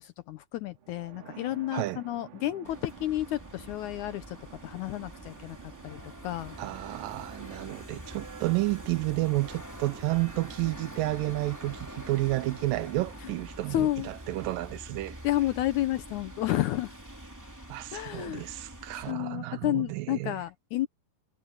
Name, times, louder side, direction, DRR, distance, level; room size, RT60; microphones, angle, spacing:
voice 1, 0.0-4.4 4.6-5.6 5.8-6.5 13.7-14.1 15.2-16.9 17.9-18.5 19.1-20.9, left 14 dB, 85° left, 1.7 m, -31 dB
sound 1, 0.7-16.7, right 9 dB, 60° right, 3.0 m, -53 dB
voice 2, 1.7-2.0 6.6-15.2 17.7-20.3, right 19 dB, 80° right, 2.2 m, -31 dB
sound 2, 2.6-19.1, right 1 dB, 5° right, 2.3 m, -45 dB
omnidirectional pair, 4.3 m